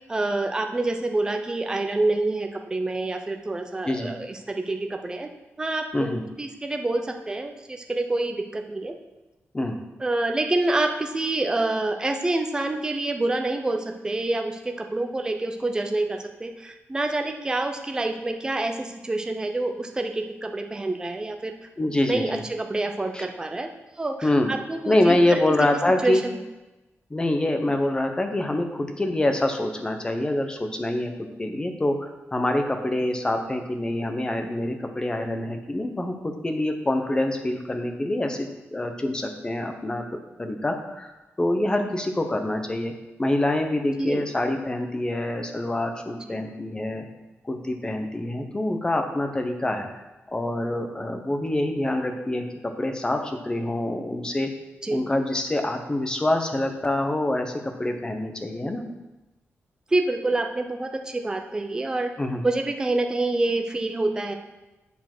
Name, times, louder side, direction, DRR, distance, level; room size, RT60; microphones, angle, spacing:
voice 1, 0.0-5.3 5.6-9.0 10.0-21.5 22.1-23.7 23.9-25.5 26.0-26.4 44.0-44.2 46.2-46.4 54.8-55.0 59.9-62.1 62.4-64.3, right 2 dB, 15° right, 4 dB, 0.6 m, -27 dB
voice 2, 21.8-22.3 23.1-23.2 24.2-24.5 24.9-26.2 27.1-40.1 40.4-41.1 41.4-42.9 43.2-47.1 47.4-54.5 54.9-58.8 62.2-62.4, left 1 dB, 20° left, 5 dB, 0.8 m, -26 dB
8.2 x 4.6 x 6.0 m, 1.0 s
wide cardioid pair, 170°, 5 cm